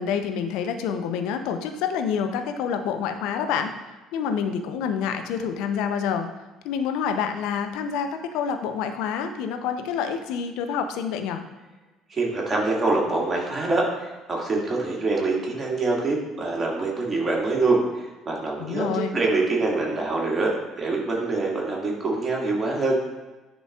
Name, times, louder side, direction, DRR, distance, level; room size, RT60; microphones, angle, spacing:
voice 1, 0.0-3.7 4.1-6.3 6.6-11.4 18.6-19.2, left 7 dB, 65° left, 7 dB, 0.6 m, -27 dB
voice 2, 12.1-13.9 14.3-17.8 18.3-23.0, right 3 dB, 30° right, -2 dB, 2.0 m, -25 dB
10.0 x 4.0 x 2.4 m, 1.2 s
figure-of-eight pair, 55°, 0 cm